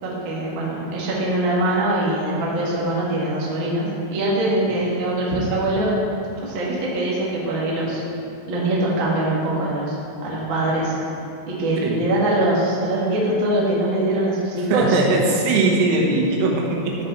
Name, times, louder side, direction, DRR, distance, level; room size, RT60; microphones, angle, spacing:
voice 1, 0.0-5.9 6.4-8.0 8.5-10.0 10.2-10.9 11.5-15.0 17.0-17.1, right 1 dB, 60° right, -6 dB, 1.2 m, -23 dB
voice 2, 14.7-16.9, right 3 dB, 90° right, -1 dB, 3.8 m, -20 dB
13.0 x 5.6 x 4.5 m, 2.7 s
omnidirectional pair, 5.7 m